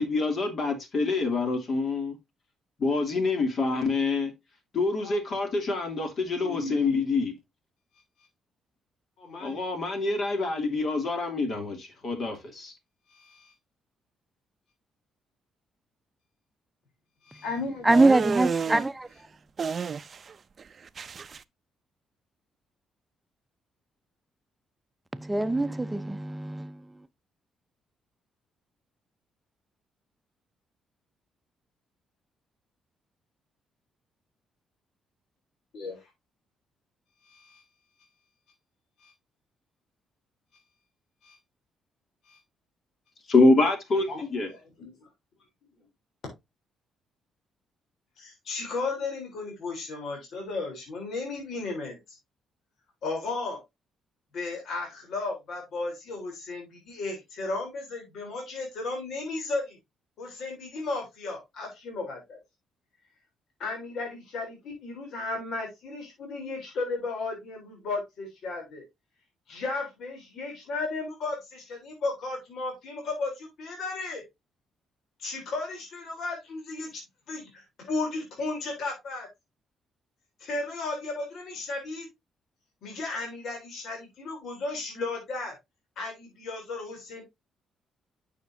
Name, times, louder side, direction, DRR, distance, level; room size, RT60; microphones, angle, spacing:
voice 1, 0.0-2.2 2.8-4.3 4.7-7.3 9.4-12.7 43.3-44.5, left 3 dB, 55° left, 2.8 m, -26 dB
voice 2, 3.5-3.8 5.0-5.2 6.4-7.0 9.2-9.7 13.1-13.5 17.3-18.0 35.7-36.0 37.3-37.6 39.0-39.1 41.2-41.4 42.3-42.4 44.1-45.1 48.2-52.2 53.0-53.6 54.3-59.8 60.2-62.4 63.6-68.8 69.5-74.2 75.2-77.0 77.3-79.3 80.4-82.1 82.8-85.5 86.0-87.2, left 3 dB, 70° left, 3.5 m, -35 dB
voice 3, 17.8-19.1 25.1-26.8, right 2 dB, 10° right, 0.7 m, -23 dB
sound 1, 17.9-18.9 19.6-20.3 20.6-21.4, right 5 dB, 45° right, 0.5 m, -30 dB
9.3 x 6.7 x 2.7 m
cardioid pair, 90°, 0 cm